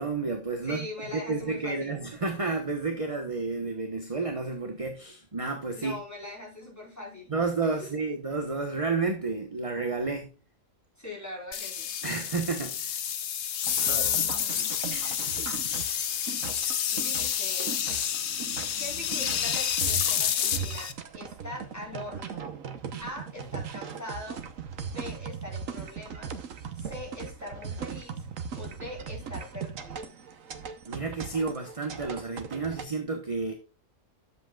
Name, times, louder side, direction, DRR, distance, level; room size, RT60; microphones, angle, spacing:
voice 1, 0.0-0.9 1.1-6.0 7.3-10.3 12.0-13.0 13.9-14.1 22.9-23.0 30.9-33.5, right 3 dB, 25° right, 4 dB, 1.2 m, -31 dB
voice 2, 0.6-2.0 5.7-7.3 7.8-7.9 11.0-11.9 13.7-14.8 16.9-17.8 18.5-22.5 23.0-24.4 24.8-26.4 26.7-28.3 28.5-30.1, left 2 dB, 10° left, -2 dB, 4.5 m, -42 dB
sound 1, 11.5-20.9, left 9 dB, 65° left, 1.0 m, -29 dB
sound 2, 13.6-32.9, right 6 dB, 85° right, 1.4 m, -39 dB
11.0 x 7.6 x 2.4 m, 0.34 s
omnidirectional pair, 1.3 m